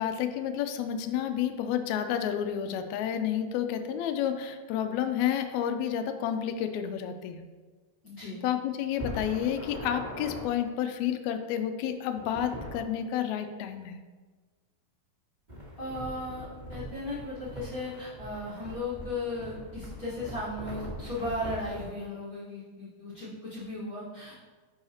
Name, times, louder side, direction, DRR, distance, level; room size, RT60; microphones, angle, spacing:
voice 1, 0.0-7.5 8.4-14.0, left 9 dB, 85° left, 7 dB, 1.6 m, -30 dB
voice 2, 8.0-8.4 15.8-24.4, left 2 dB, 45° left, -9 dB, 1.4 m, -36 dB
sound 1, 8.9-10.4 12.1-12.8 15.5-21.9, equal, 20° right, 1.3 m, -41 dB
10.5 x 4.8 x 2.8 m, 1.3 s
omnidirectional pair, 3.8 m